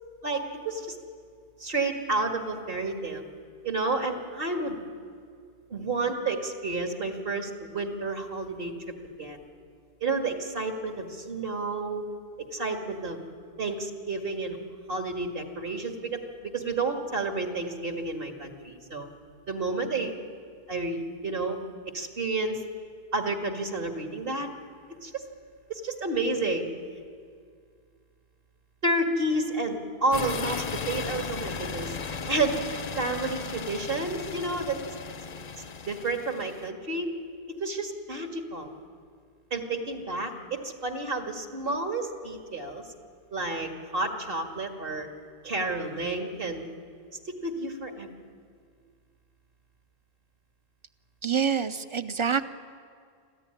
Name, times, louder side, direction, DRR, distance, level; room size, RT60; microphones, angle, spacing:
voice 1, 0.2-1.0 1.6-3.2 3.6-4.8 5.7-8.7 9.2-9.4 10.0-12.0 12.5-13.2 13.6-14.6 14.9-19.1 19.5-20.1 20.7-21.6 21.9-22.6 23.1-24.5 25.0-25.2 25.7-26.7 28.8-32.0 32.3-34.8 35.9-37.1 37.5-38.7 39.5-42.8 43.3-45.1 45.4-46.7 47.2-48.1, right 2 dB, 65° right, 3 dB, 2.3 m, -30 dB
sound 1, 30.1-36.7, left 5 dB, 45° left, 0.8 m, -36 dB
voice 2, 51.2-52.5, right 7 dB, 30° right, 12 dB, 0.7 m, -26 dB
26.0 x 14.5 x 9.8 m, 2.2 s
omnidirectional pair, 1.0 m